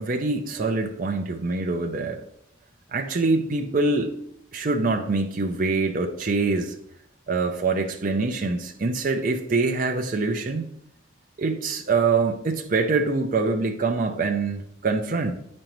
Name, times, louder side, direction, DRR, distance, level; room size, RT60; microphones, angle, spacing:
voice 1, 0.0-2.2 2.9-4.2 4.5-6.8 7.3-10.7 11.4-15.3, right 3 dB, 45° right, 4 dB, 0.5 m, -24 dB
8.7 x 5.2 x 3.0 m, 0.72 s
head